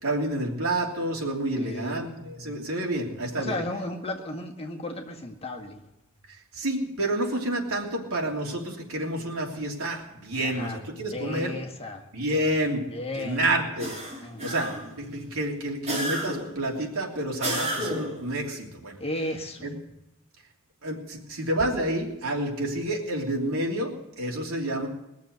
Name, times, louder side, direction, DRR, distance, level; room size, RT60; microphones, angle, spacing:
voice 1, 0.0-3.6 6.5-11.6 12.1-12.8 13.1-13.9 14.4-14.7 15.0-19.0 19.6-19.7 20.8-24.9, right 1 dB, 90° right, 0 dB, 3.1 m, -29 dB
voice 2, 1.5-2.0 3.4-5.8 10.3-10.8 11.1-12.1 12.9-13.5 14.2-14.8 19.0-19.7, left 1 dB, 30° left, 1 dB, 1.9 m, -34 dB
sound 1, 13.8-15.0 15.9-16.6 17.4-18.2, right 1 dB, 30° right, 3.6 m, -31 dB
21.0 x 7.2 x 8.1 m, 0.88 s
head